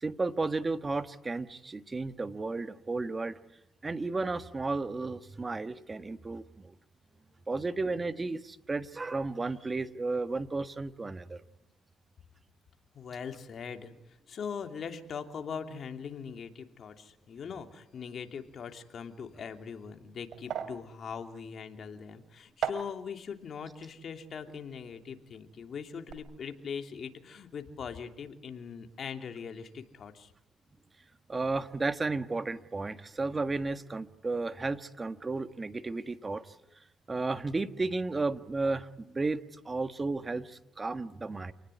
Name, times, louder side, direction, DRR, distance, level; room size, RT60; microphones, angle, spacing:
voice 1, 0.0-3.4 3.8-6.7 7.5-11.4 31.3-36.4 37.1-41.5, right 3 dB, 25° right, 11 dB, 1.5 m, -33 dB
voice 2, 12.9-30.3, left 6 dB, 55° left, 5 dB, 3.0 m, -41 dB
sound 1, 19.6-25.6 25.8-26.1, right 8 dB, 70° right, 2.9 m, -41 dB
28.5 x 19.5 x 9.9 m, 0.84 s
cardioid pair, 90°, 0 cm